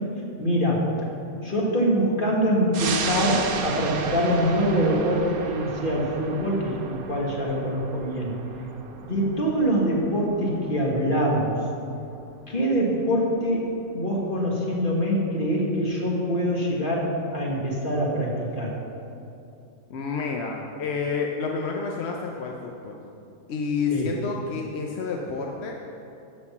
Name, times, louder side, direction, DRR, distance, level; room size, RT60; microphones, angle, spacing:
voice 1, 0.4-0.9 1.4-8.3 9.0-11.6 12.5-13.7 13.9-18.8 23.9-24.1, equal, 35° left, -3 dB, 1.7 m, -24 dB
sound 1, 2.7-13.7 14.1-14.2, right 5 dB, 85° right, 1.3 m, -35 dB
voice 2, 19.9-23.0 23.5-25.8, left 5 dB, 55° left, 0 dB, 0.9 m, -29 dB
12.5 x 4.4 x 7.1 m, 2.7 s
omnidirectional pair, 1.5 m